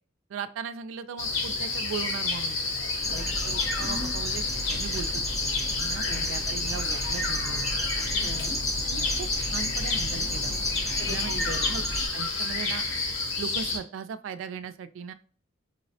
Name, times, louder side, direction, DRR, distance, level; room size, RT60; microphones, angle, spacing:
voice 1, 0.3-2.6 3.4-4.4 4.7-8.1 8.8-10.5 11.1-11.4 11.7-11.8 12.1-12.8 13.4-15.1, right 6 dB, 75° right, 12 dB, 0.3 m, -38 dB
sound 1, 1.2-13.8, left 3 dB, 90° left, 0.8 m, -29 dB
sound 2, 3.0-12.1, equal, ahead, 0.4 m, -34 dB
voice 2, 3.8-4.2 6.0-6.3 8.1-8.6 11.0-11.7, left 2 dB, 55° left, 5 dB, 0.6 m, -39 dB
5.3 x 2.0 x 2.7 m, 0.41 s
head